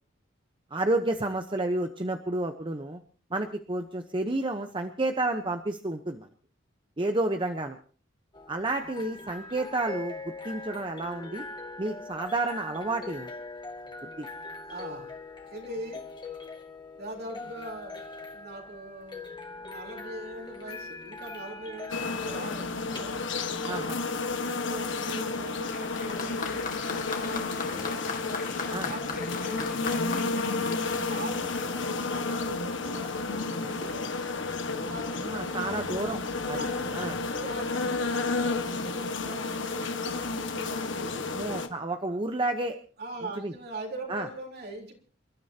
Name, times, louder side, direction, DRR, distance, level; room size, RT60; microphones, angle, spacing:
voice 1, 0.7-3.0 3.3-6.3 7.0-7.8 8.5-11.4 11.8-13.3 14.2-14.3 23.7-24.0 28.7-28.9 35.2-36.2 36.5-36.6 36.9-37.2 41.3-42.8 43.4-43.5 44.1-44.3, right 2 dB, 25° right, 6 dB, 0.9 m, -30 dB
sound 1, 8.3-27.5, left 3 dB, 25° left, 2.0 m, -42 dB
voice 2, 14.7-15.2 15.5-16.0 17.0-23.9 24.5-28.0 28.8-29.8 30.8-34.2 34.8-35.9 36.4-41.4 42.1-42.2 43.0-44.9, right 1 dB, 55° right, 1 dB, 3.8 m, -42 dB
sound 2, 21.9-41.7, left 3 dB, 65° left, 1.7 m, -31 dB
Applause, 25.7-32.1 33.0-33.1, left 5 dB, 45° left, 2.1 m, -38 dB
28.5 x 13.0 x 2.9 m, 0.43 s
head